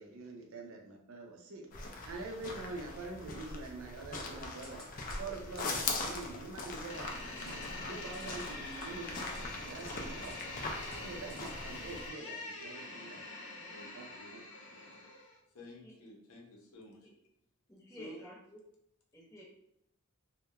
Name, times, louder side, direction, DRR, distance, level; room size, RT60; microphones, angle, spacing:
voice 1, 0.0-1.7 2.1-4.9 5.2-7.6 7.8-10.4 11.0-13.3 13.9-14.1, right 3 dB, 65° right, 2 dB, 0.5 m, -45 dB
sound 1, 1.7-12.1, left 3 dB, 40° left, 0.3 m, -41 dB
sound 2, 4.1-4.4 4.6-4.8 5.1-5.3 5.6-5.8 6.0-6.1 7.3-7.6 8.0-8.3 8.7-9.4 9.7-10.4 10.8-11.5 11.9-12.0, right 2 dB, 45° right, 0.9 m, -54 dB
Door, 6.9-15.4, left 2 dB, 55° left, 0.9 m, -45 dB
voice 2, 13.7-14.4 15.5-17.0 17.9-18.2, left 1 dB, 90° left, 0 dB, 0.6 m, -52 dB
voice 3, 17.7-18.6 19.1-19.4, equal, 15° left, -5 dB, 0.8 m, -51 dB
2.2 x 2.1 x 2.8 m, 0.77 s
head